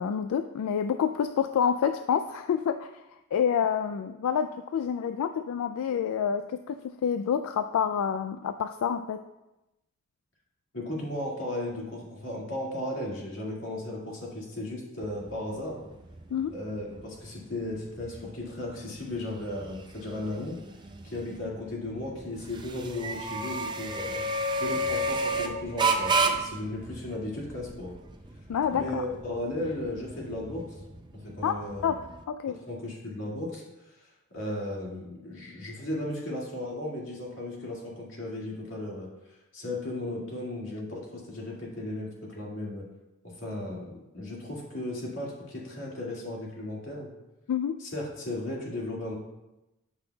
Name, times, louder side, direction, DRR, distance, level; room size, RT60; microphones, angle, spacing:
voice 1, 0.0-2.9 3.3-9.2 16.3-16.6 28.5-29.0 31.4-32.0 32.3-32.6 47.5-47.8, left 7 dB, 80° left, 9 dB, 0.3 m, -28 dB
voice 2, 10.7-15.8 16.5-20.6 21.0-27.9 28.7-30.6 31.2-31.9 32.7-33.6 34.3-39.1 39.5-42.9 43.2-47.1 47.8-49.1, left 1 dB, 55° left, -4 dB, 2.1 m, -35 dB
sound 1, 15.0-32.2, right 2 dB, 20° right, 0.4 m, -33 dB
12.0 x 5.4 x 2.3 m, 0.98 s
head